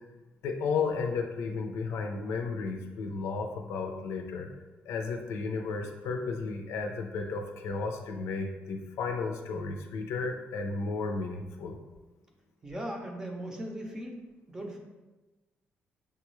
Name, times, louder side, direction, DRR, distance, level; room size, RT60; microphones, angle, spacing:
voice 1, 0.4-4.5 4.9-11.8, left 4 dB, 85° left, 3 dB, 0.6 m, -33 dB
voice 2, 12.6-14.2 14.5-14.8, right 1 dB, 15° right, 1 dB, 0.6 m, -38 dB
6.8 x 2.3 x 3.0 m, 1.1 s
cardioid pair, 165°, 4 cm